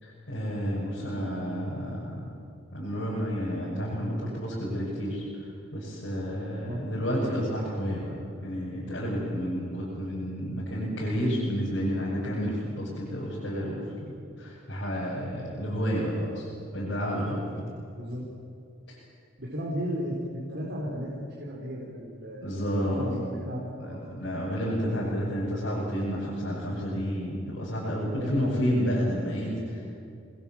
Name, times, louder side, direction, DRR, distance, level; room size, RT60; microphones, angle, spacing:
voice 1, 0.0-2.2 2.7-5.2 5.7-14.1 14.4-16.5 16.7-17.6 18.9-19.0 22.4-23.0 23.8-29.9, equal, 60° left, -7 dB, 6.4 m, -30 dB
voice 2, 19.4-21.1 21.4-24.0 24.3-24.5 28.1-28.6, equal, 60° right, -4 dB, 4.2 m, -35 dB
27.0 x 20.5 x 7.4 m, 2.7 s
head